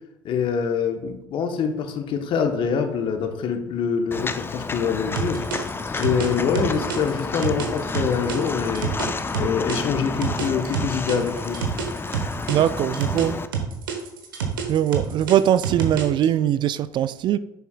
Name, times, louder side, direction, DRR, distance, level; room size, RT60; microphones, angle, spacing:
voice 1, 0.2-5.4 6.0-8.9 9.4-11.6, left 6 dB, 50° left, 1.0 m, -25 dB
Walk footsteps, 4.1-13.5, left 4 dB, 20° left, 0.5 m, -30 dB
sound 1, 5.2-9.8 10.2-13.3 13.5-16.3, right 7 dB, 80° right, 1.1 m, -28 dB
voice 2, 12.5-13.4 14.7-17.4, right 11 dB, 45° right, 0.3 m, -21 dB
10.0 x 6.9 x 2.3 m
hypercardioid pair, 60°, 11 cm